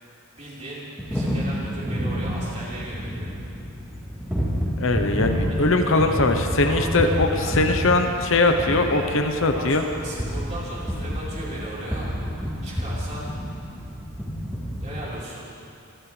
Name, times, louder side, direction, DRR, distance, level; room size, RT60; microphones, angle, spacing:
voice 1, 0.3-3.3 5.8-6.1 6.6-7.1 7.4-7.5 9.5-12.1 12.6-13.3 14.8-15.5, right 1 dB, 30° right, -8 dB, 4.4 m, -37 dB
sound 1, 1.0-15.0, equal, 5° right, 3.6 m, -29 dB
voice 2, 4.8-9.8, left 2 dB, 60° left, 5 dB, 1.0 m, -21 dB
27.0 x 14.0 x 3.4 m, 2.6 s
head